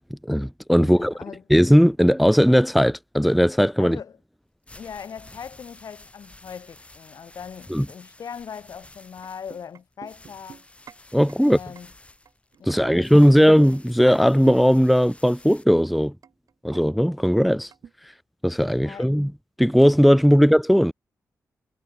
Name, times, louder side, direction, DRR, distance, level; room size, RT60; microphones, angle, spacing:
voice 1, 0.3-1.1 1.5-4.0 7.7-7.8 11.1-11.6 12.7-16.1 16.6-17.7 18.4-19.3 19.6-20.9, equal, ahead, 0.4 m, -17 dB
voice 2, 0.8-1.5 3.8-4.2 4.7-10.6 11.4-11.9 12.6-13.4 18.7-19.1, left 7 dB, 65° left, 1.4 m, -40 dB
sound 1, 4.4-15.7, left 2 dB, 20° left, 3.1 m, -51 dB
sound 2, 9.2-11.0 11.3-11.4 11.8-11.9 12.3-12.8 13.2-14.8 15.2-15.3 15.7-15.8 16.2-17.9, right 7 dB, 65° right, 0.7 m, -40 dB
cardioid pair, 60°, 6 cm